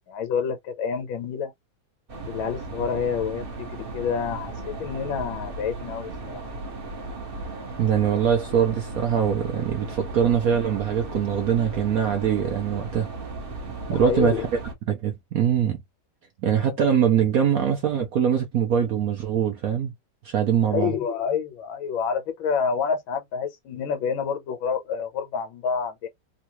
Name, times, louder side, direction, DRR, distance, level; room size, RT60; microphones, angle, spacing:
voice 1, 0.1-1.5 2.2-6.5 13.9-14.5 20.7-26.1, left 6 dB, 85° left, 1.7 m, -28 dB
sound 1, 2.1-14.7, right 2 dB, 40° right, 0.9 m, -36 dB
voice 2, 7.8-13.1 13.9-14.6 14.9-15.8 16.4-19.9 20.2-20.9, right 8 dB, 70° right, 0.8 m, -23 dB
3.7 x 2.3 x 2.9 m
omnidirectional pair, 2.1 m